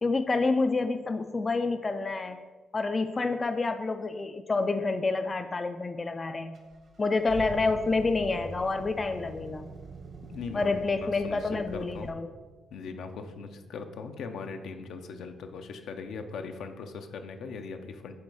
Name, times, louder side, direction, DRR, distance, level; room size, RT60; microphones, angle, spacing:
voice 1, 0.0-2.4 2.7-6.6 7.0-9.7 10.5-12.3, left 3 dB, 30° left, 8 dB, 0.3 m, -28 dB
sound 1, 6.5-12.1, right 4 dB, 55° right, 0.9 m, -43 dB
voice 2, 10.3-12.1 12.7-18.2, left 5 dB, 75° left, 6 dB, 0.6 m, -40 dB
7.9 x 3.1 x 4.8 m, 1.3 s
cardioid pair, 100°, 0 cm